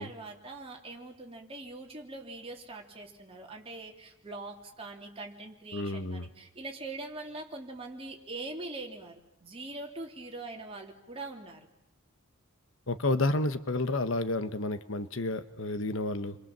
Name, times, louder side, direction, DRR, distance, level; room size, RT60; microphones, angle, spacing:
voice 1, 0.0-11.7, right 2 dB, 25° right, 1 dB, 3.4 m, -42 dB
voice 2, 5.7-6.3 12.9-16.4, left 2 dB, 65° left, 11 dB, 1.2 m, -30 dB
30.0 x 23.5 x 7.5 m, 0.83 s
head